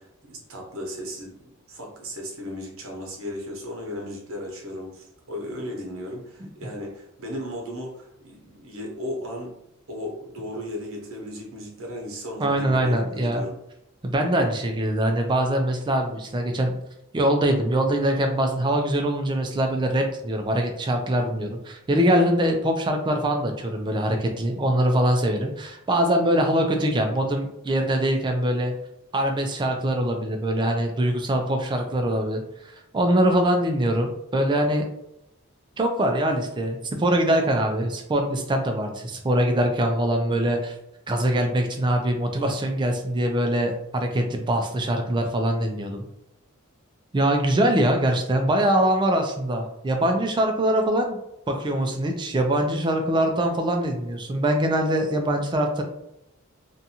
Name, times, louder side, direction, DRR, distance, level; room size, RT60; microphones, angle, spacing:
voice 1, 0.0-9.5 9.9-13.5, left 1 dB, 70° right, -1 dB, 0.8 m, -35 dB
voice 2, 12.4-13.4 14.0-16.7 17.1-28.7 29.1-32.4 32.9-34.9 35.8-40.7 41.1-46.0 47.1-51.2 51.5-55.8, right 1 dB, 20° right, 4 dB, 0.3 m, -23 dB
2.6 x 2.3 x 2.7 m, 0.83 s
head